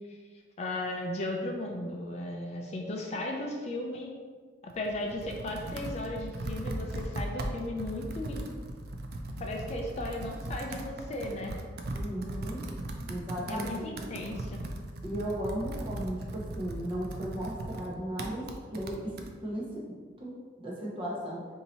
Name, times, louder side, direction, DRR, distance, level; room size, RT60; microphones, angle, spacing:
voice 1, 0.6-4.1 4.6-8.5 9.4-11.5 13.5-14.6, left 1 dB, 35° left, 1 dB, 0.4 m, -36 dB
Computer keyboard, 4.7-19.3, right 1 dB, 60° right, 0.4 m, -38 dB
voice 2, 11.9-12.6 13.1-13.9 15.0-18.5 18.7-19.1 19.4-19.8 20.2-20.3 20.6-21.4, right 1 dB, 30° right, -4 dB, 0.8 m, -35 dB
2.8 x 2.7 x 4.2 m, 1.5 s
head